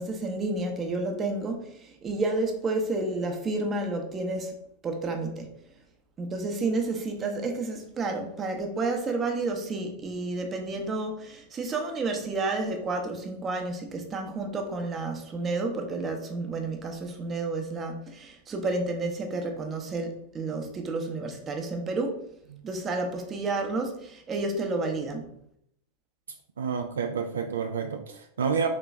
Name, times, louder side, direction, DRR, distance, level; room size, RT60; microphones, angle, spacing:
voice 1, 0.0-4.6 4.8-5.5 6.2-22.3 22.6-25.3, right 3 dB, 25° right, 0.7 m, -30 dB
voice 2, 26.6-28.7, right 6 dB, 65° right, 0.3 m, -29 dB
3.8 x 3.0 x 3.4 m
figure-of-eight pair, 90°, 0 cm